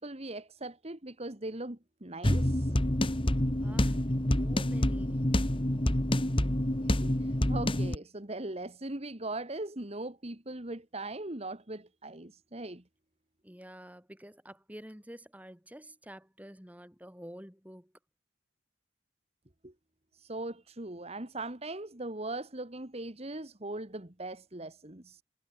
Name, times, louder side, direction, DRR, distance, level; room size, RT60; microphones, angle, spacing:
voice 1, 0.0-2.8 6.8-12.8 19.6-19.7 20.1-25.2, right 2 dB, 35° right, 1.9 m, -40 dB
sound 1, 2.2-8.0, left 1 dB, 30° left, 1.8 m, -27 dB
voice 2, 3.6-4.0 4.3-5.3 13.4-17.9, equal, 10° right, 6.7 m, -48 dB
head